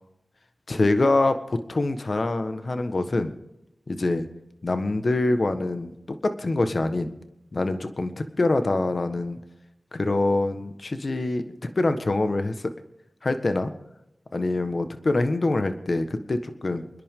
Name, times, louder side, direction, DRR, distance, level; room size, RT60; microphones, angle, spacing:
voice 1, 0.7-3.3 3.9-4.3 4.6-7.1 7.5-9.4 9.9-12.7 13.2-13.7 14.3-16.9, left 2 dB, 55° left, 8 dB, 1.4 m, -25 dB
29.5 x 10.5 x 3.8 m, 0.89 s
wide cardioid pair, 55°, 0 cm